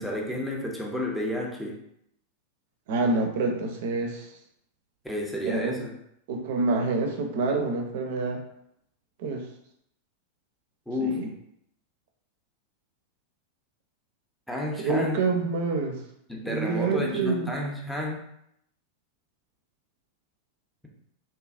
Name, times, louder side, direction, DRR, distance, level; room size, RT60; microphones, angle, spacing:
voice 1, 0.0-1.8 5.0-5.9 10.9-11.2 14.5-15.2 16.3-18.2, left 1 dB, ahead, -2 dB, 0.5 m, -31 dB
voice 2, 2.9-4.3 5.4-5.8 6.3-8.4 9.2-9.4 11.0-11.3 14.8-16.0 16.4-17.5, right 3 dB, 55° right, 3 dB, 0.5 m, -27 dB
2.8 x 2.3 x 2.4 m, 0.75 s
figure-of-eight pair, 90°, 0 cm